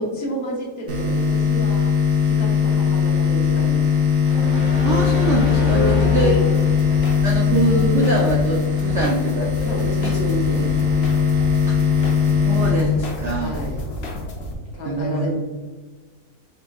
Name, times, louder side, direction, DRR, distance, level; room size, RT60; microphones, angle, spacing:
voice 1, 0.0-4.0 5.7-6.5 9.6-11.2 13.4-13.8 14.7-15.3, equal, 60° left, -1 dB, 1.1 m, -30 dB
sound 1, 0.9-13.8, left 7 dB, 50° right, 0.9 m, -20 dB
sound 2, 4.2-7.0, left 4 dB, 40° left, 1.3 m, -26 dB
voice 2, 4.8-6.4 7.2-9.5 10.0-10.1 11.7-11.8 12.4-13.6 14.8-15.3, right 2 dB, 75° right, -1 dB, 0.6 m, -23 dB
sound 3, 6.5-14.5, equal, 90° left, 0.5 m, -32 dB
5.2 x 3.7 x 2.3 m, 1.4 s
omnidirectional pair, 2.0 m